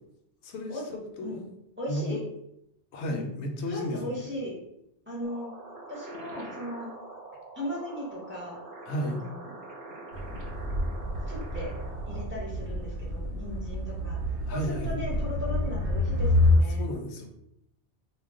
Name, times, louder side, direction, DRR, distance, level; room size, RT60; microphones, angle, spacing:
voice 1, 0.4-1.4 1.9-2.2 2.9-4.2 8.9-9.2 14.4-14.9 16.8-17.3, equal, 75° left, 2 dB, 0.8 m, -33 dB
voice 2, 1.8-2.2 3.1-3.3 3.7-4.6 5.1-5.5 5.9-6.9 7.6-8.6 9.0-9.4 11.3-11.7 12.1-14.2 14.5-16.9, equal, 15° right, -5 dB, 0.6 m, -37 dB
sound 1, 5.2-12.2, right 2 dB, 60° right, 0.7 m, -44 dB
sound 2, 10.1-16.6, left 1 dB, 90° right, 0.9 m, -28 dB
2.3 x 2.1 x 3.5 m, 0.80 s
omnidirectional pair, 1.2 m